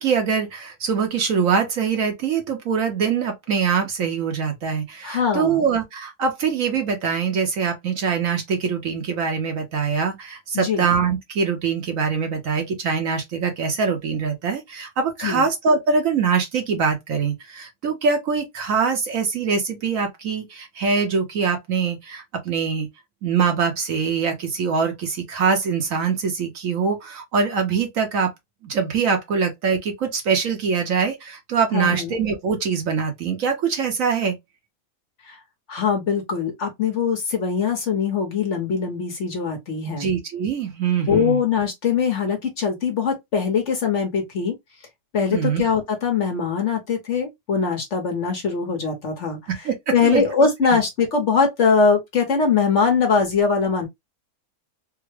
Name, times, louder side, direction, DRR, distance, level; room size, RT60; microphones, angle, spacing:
voice 1, 0.0-22.9 23.2-28.3 28.6-34.4 40.0-41.4 45.3-45.6 49.5-50.2, right 6 dB, 60° right, 1.1 m, -23 dB
voice 2, 5.0-5.6 10.5-10.9 15.2-15.5 31.7-32.2 35.3-35.4 35.7-40.1 41.1-44.5 45.1-49.4 49.9-53.9, left 5 dB, 55° left, 1.0 m, -22 dB
3.5 x 2.1 x 3.1 m
omnidirectional pair, 1.7 m